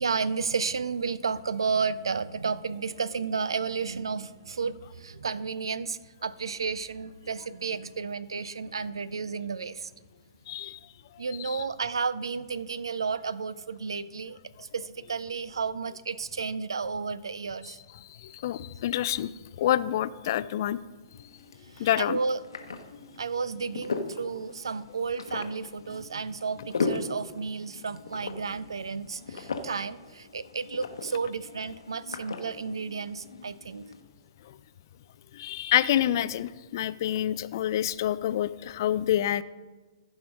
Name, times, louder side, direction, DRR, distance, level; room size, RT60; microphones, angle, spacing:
voice 1, 0.0-9.9 11.2-17.8 21.7-22.4 23.2-33.9, right 5 dB, 70° right, 17 dB, 0.4 m, -32 dB
voice 2, 10.5-10.8 11.4-11.6 18.2-19.3 19.6-20.8 21.8-22.2 35.3-39.4, left 12 dB, 50° left, 16 dB, 0.3 m, -27 dB
sound 1, 21.1-34.0, left 4 dB, 70° left, 0.9 m, -38 dB
14.5 x 4.9 x 5.2 m, 1.3 s
figure-of-eight pair, 115°, 3 cm